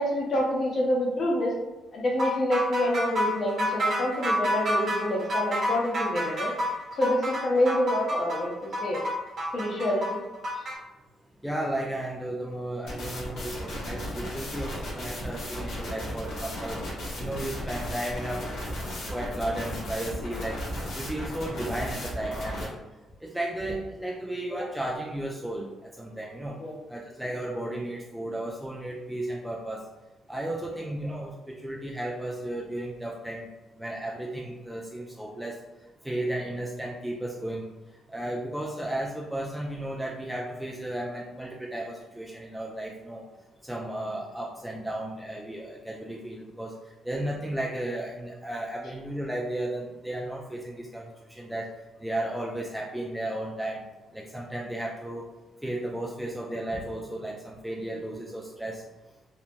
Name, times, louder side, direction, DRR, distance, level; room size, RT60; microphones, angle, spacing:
voice 1, 0.0-1.5 1.9-6.5 6.9-9.0 9.5-10.2 10.6-10.7 26.6-26.7 30.7-30.8, left 1 dB, 50° left, -2 dB, 0.8 m, -27 dB
sound 1, 2.2-10.7, equal, 50° right, 0.9 m, -29 dB
voice 2, 11.4-16.8 17.2-18.4 19.1-20.6 20.9-22.8 23.2-26.6 26.9-29.8 30.3-33.5 33.8-35.6 36.0-37.6 38.1-43.2 43.6-46.7 47.0-51.7 52.0-53.9 54.1-55.3 55.6-58.8, right 1 dB, 5° right, -2 dB, 0.3 m, -34 dB
sound 2, 12.9-22.7, equal, 75° left, 0.9 m, -35 dB
2.9 x 2.0 x 2.5 m, 1.1 s
cardioid pair, 90°, 0 cm